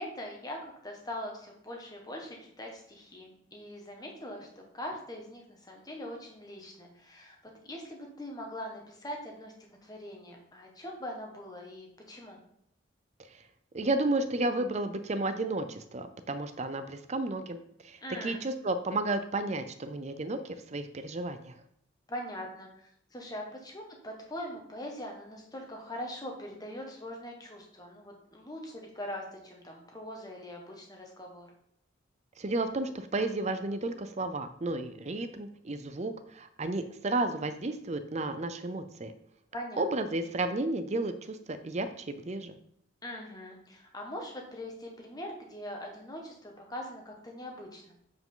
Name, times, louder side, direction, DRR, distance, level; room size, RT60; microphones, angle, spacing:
voice 1, 0.0-7.4 7.6-9.5 9.8-12.4 18.0-18.4 22.1-31.5 39.5-39.8 43.0-47.8, left 1 dB, 20° left, 1 dB, 1.3 m, -42 dB
voice 2, 13.7-21.5 32.4-39.1 39.8-42.6, right 2 dB, 35° right, 10 dB, 0.5 m, -32 dB
7.5 x 4.8 x 3.9 m, 0.71 s
head